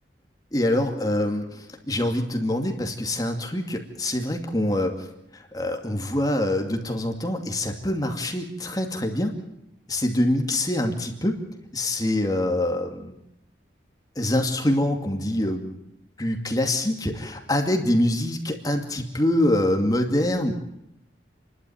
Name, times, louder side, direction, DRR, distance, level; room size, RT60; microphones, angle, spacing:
voice 1, 0.5-1.5 1.9-5.0 5.3-9.3 9.9-11.4 11.7-13.1 14.2-15.7 16.2-20.5, left 1 dB, 20° left, 3 dB, 2.5 m, -25 dB
29.5 x 12.5 x 9.4 m, 0.81 s
head